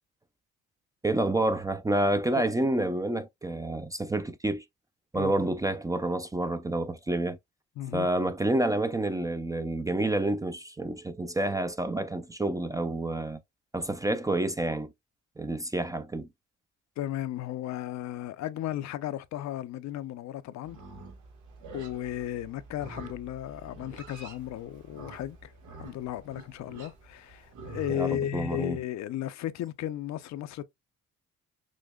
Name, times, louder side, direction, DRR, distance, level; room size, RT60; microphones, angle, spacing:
voice 1, 1.0-4.6 5.1-7.4 7.9-13.4 13.7-14.9 15.4-16.3 27.9-28.8, right 1 dB, 10° right, 0.4 m, -28 dB
voice 2, 5.1-5.5 7.8-8.1 17.0-20.8 21.7-25.5 25.8-30.6, left 12 dB, 65° left, 0.5 m, -35 dB
Livestock farm animals working animals, 20.6-28.0, right 3 dB, 80° right, 1.1 m, -47 dB
6.2 x 2.1 x 2.2 m
cardioid pair, 90°, 30 cm